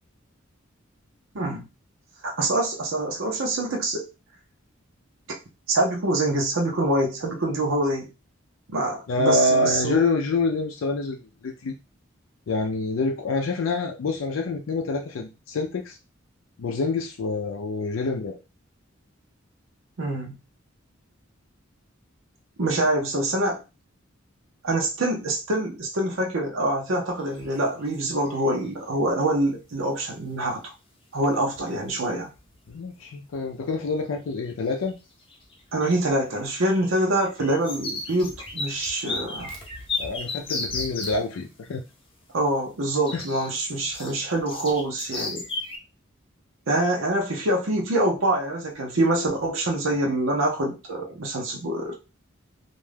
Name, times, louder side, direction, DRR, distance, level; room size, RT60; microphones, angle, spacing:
voice 1, 1.3-1.7 2.2-4.1 5.7-8.1 8.7-10.0 20.0-20.4 22.6-23.6 24.6-30.7 31.1-32.3 35.7-39.5 42.3-45.4 46.7-51.9, right 1 dB, 70° right, 0 dB, 0.7 m, -25 dB
voice 2, 9.1-11.7 12.5-16.0 16.6-18.4 32.7-35.0 40.0-41.8 43.1-43.2, left 3 dB, 75° left, 2 dB, 0.4 m, -26 dB
sound 1, 27.3-27.6 27.9-28.5 30.4-30.5 31.2-31.3 31.5-31.9 32.2-32.8 33.3-33.4 34.5-34.9 35.2-41.2 43.0-45.8, left 3 dB, 25° left, 0.7 m, -34 dB
2.5 x 2.2 x 3.3 m, 0.29 s
head